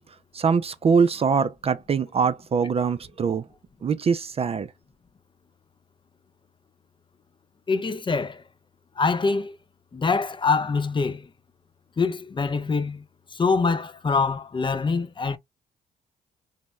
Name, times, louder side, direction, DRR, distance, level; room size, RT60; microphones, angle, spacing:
voice 1, 0.3-3.4 3.8-4.7, right 5 dB, 30° right, 0.4 m, -23 dB
voice 2, 7.7-8.4 9.0-9.6 9.9-11.3 12.0-13.0 13.3-15.4, left 4 dB, 25° left, 0.5 m, -24 dB
2.9 x 2.0 x 3.3 m
hypercardioid pair, 50°, 19 cm